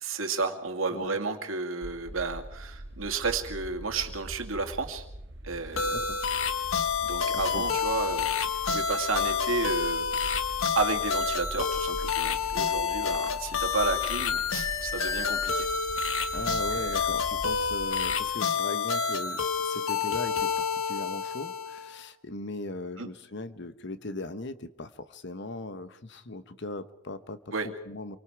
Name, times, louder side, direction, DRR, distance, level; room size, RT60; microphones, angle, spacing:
voice 1, 0.0-5.0 5.4-6.0 7.0-10.4 10.8-15.7 16.1-16.3 16.7-17.0 23.0-23.1 27.5-27.7, right 4 dB, 80° right, 5 dB, 2.3 m, -32 dB
sound 1, 1.8-18.2, right 1 dB, 60° right, 1.6 m, -43 dB
sound 2, 5.8-21.9, left 6 dB, 85° left, 1.4 m, -29 dB
voice 2, 7.3-7.6 16.3-27.4 27.9-28.2, left 2 dB, 60° left, 12 dB, 1.1 m, -38 dB
27.5 x 24.0 x 4.7 m, 0.81 s
head